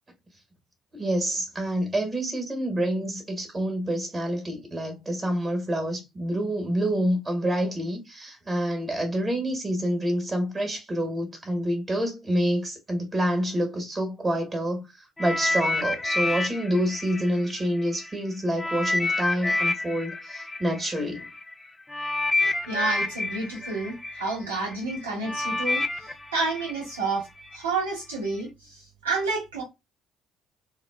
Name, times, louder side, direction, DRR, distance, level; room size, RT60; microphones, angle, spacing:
voice 1, 0.9-21.3, equal, 30° right, 1.1 m, -27 dB
sound 1, 15.2-18.1 18.6-27.6 28.3-28.4, left 2 dB, 20° left, 0.5 m, -29 dB
voice 2, 22.7-27.3 27.5-29.6, right 3 dB, 85° right, 1.1 m, -30 dB
3.6 x 2.4 x 2.2 m
figure-of-eight pair, 50°, 0 cm